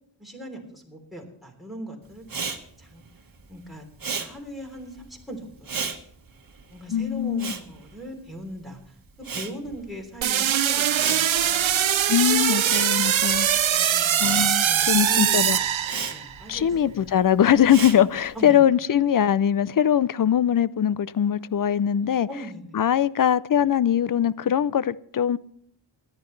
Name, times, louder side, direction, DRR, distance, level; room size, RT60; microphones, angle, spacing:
voice 1, 0.2-2.4 2.8-3.0 3.5-3.8 4.2-5.9 6.7-11.7 13.6-14.3 14.6-15.7 16.1-17.1 18.3-18.6 22.3-22.8, right 1 dB, ahead, 3.4 m, -39 dB
Respiratory sounds, 2.2-8.7 9.0-18.4, right 5 dB, 45° right, 1.5 m, -35 dB
voice 2, 6.9-7.5 12.1-13.5 13.8-13.9 14.2-15.6 16.5-22.3 22.7-25.4, left 9 dB, 50° left, 0.4 m, -21 dB
sound 1, 10.2-16.4, right 10 dB, 85° right, 0.8 m, -22 dB
23.5 x 10.5 x 3.2 m
wide cardioid pair, 115°, 46 cm